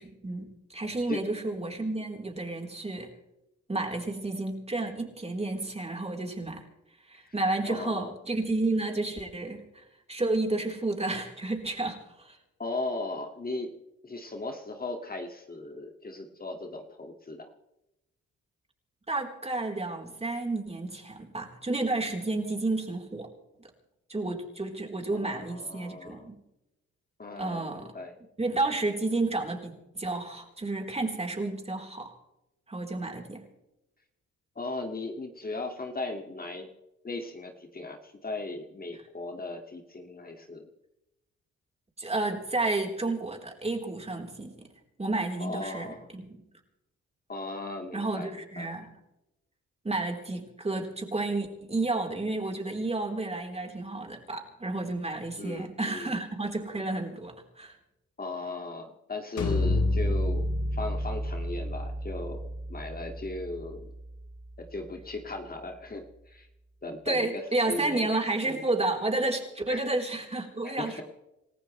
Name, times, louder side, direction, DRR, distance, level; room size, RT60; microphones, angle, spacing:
voice 1, 0.0-3.1 3.7-6.7 7.1-9.8 10.1-12.4 19.1-23.3 24.1-26.4 27.4-27.9 28.4-32.1 32.7-33.4 42.0-44.7 45.0-46.4 47.9-48.9 49.8-57.7 67.1-71.0, right 2 dB, 20° right, 2 dB, 4.2 m, -31 dB
voice 2, 7.7-8.1 12.6-13.7 14.0-17.5 25.1-26.3 27.2-28.2 34.6-36.7 37.0-40.7 45.4-46.1 47.3-48.7 55.4-56.1 58.2-60.5 60.7-63.9 64.6-66.5 66.8-68.1 68.4-68.6 69.7-69.8 70.6-71.0, left 2 dB, 30° left, 3 dB, 2.3 m, -37 dB
sound 1, 59.4-65.0, left 1 dB, 80° left, 3.9 m, -31 dB
28.0 x 14.5 x 3.3 m, 0.90 s
cardioid pair, 70°, 29 cm